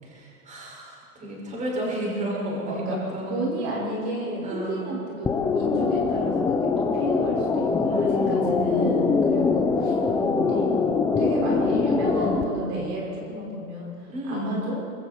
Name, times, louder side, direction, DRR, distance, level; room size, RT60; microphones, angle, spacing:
voice 1, 0.0-3.4 4.4-4.8 7.8-8.7 9.9-10.3 12.1-12.3 14.1-14.6, equal, 15° right, -4 dB, 6.2 m, -32 dB
voice 2, 2.7-6.3 6.9-9.9 10.3-10.7 11.2-14.8, right 1 dB, 35° right, -3 dB, 5.7 m, -31 dB
sound 1, 5.3-12.4, left 4 dB, 5° left, 0.6 m, -23 dB
26.5 x 23.5 x 4.6 m, 2.6 s
hypercardioid pair, 140°, 46 cm